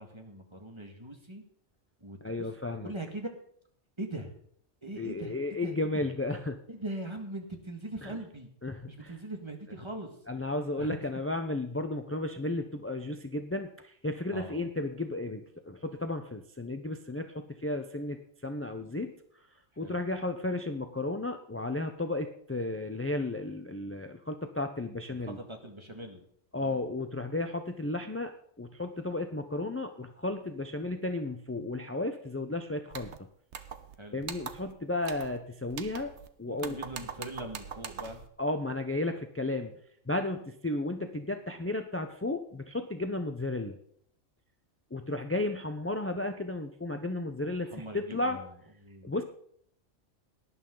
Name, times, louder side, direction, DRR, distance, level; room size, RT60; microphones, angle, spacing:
voice 1, 0.0-1.4 2.0-2.5 2.8-3.4 4.0-4.3 4.8-6.1 6.7-8.5 8.9-10.2 10.8-11.0 14.3-14.7 19.8-20.0 25.1-26.2 26.5-26.8 34.0-34.2 36.5-38.2 47.6-48.5 48.8-49.1, right 1 dB, 20° right, 3 dB, 1.9 m, -41 dB
voice 2, 2.2-2.9 5.0-6.6 8.0-8.2 8.6-9.1 10.3-19.1 19.8-25.4 26.5-28.3 28.6-33.1 34.1-36.1 36.4-36.7 38.4-39.7 40.1-43.8 44.9-48.4 49.0-49.2, left 2 dB, 20° left, 7 dB, 0.4 m, -33 dB
sound 1, 32.9-33.2 33.5-34.0 34.2-34.7 35.0-35.4 35.7-36.3 36.6-38.3, right 7 dB, 60° right, 1.2 m, -42 dB
18.0 x 11.0 x 3.9 m, 0.66 s
omnidirectional pair, 1.4 m